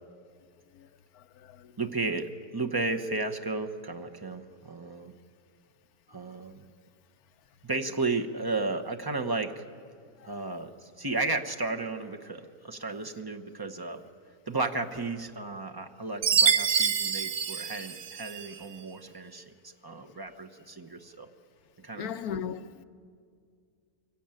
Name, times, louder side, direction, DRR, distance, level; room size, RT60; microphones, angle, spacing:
voice 1, 1.1-1.7 10.2-10.3 20.0-20.4 21.9-22.8, left 8 dB, 70° left, 1.2 m, -38 dB
voice 2, 1.8-5.1 6.1-6.7 7.6-9.6 10.3-14.0 14.5-21.3 21.8-22.1, right 3 dB, 20° right, 0.6 m, -34 dB
Chime, 16.2-18.5, right 6 dB, 65° right, 1.3 m, -26 dB
23.5 x 16.0 x 8.9 m
omnidirectional pair, 1.7 m